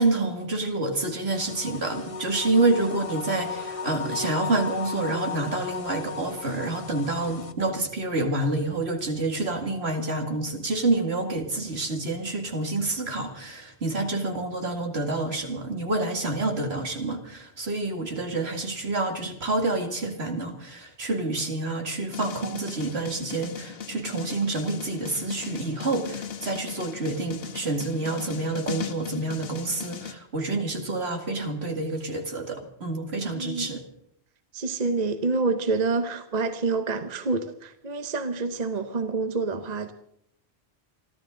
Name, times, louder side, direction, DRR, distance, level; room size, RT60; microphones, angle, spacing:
voice 1, 0.0-33.8, right 2 dB, 75° right, 2.6 m, -28 dB
sound 1, 1.3-7.5, left 5 dB, 35° left, 1.0 m, -36 dB
sound 2, 22.1-30.1, left 7 dB, 65° left, 1.3 m, -38 dB
voice 2, 33.3-33.7 34.5-39.9, right 3 dB, 40° right, 1.0 m, -27 dB
28.0 x 12.5 x 3.8 m
omnidirectional pair, 1.1 m